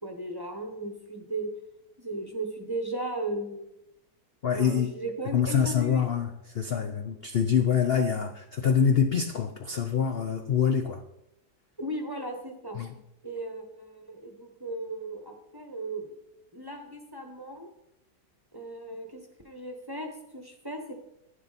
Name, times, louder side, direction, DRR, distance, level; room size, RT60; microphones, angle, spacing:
voice 1, 0.0-1.5 2.0-3.7 4.5-6.0 11.8-12.8 13.2-16.1 16.5-17.7 18.5-20.9, right 2 dB, 15° right, 3 dB, 0.9 m, -36 dB
voice 2, 4.4-4.9 5.3-11.0 12.7-12.9, left 7 dB, 70° left, 6 dB, 0.5 m, -25 dB
11.0 x 9.8 x 4.1 m, 0.87 s
omnidirectional pair, 1.9 m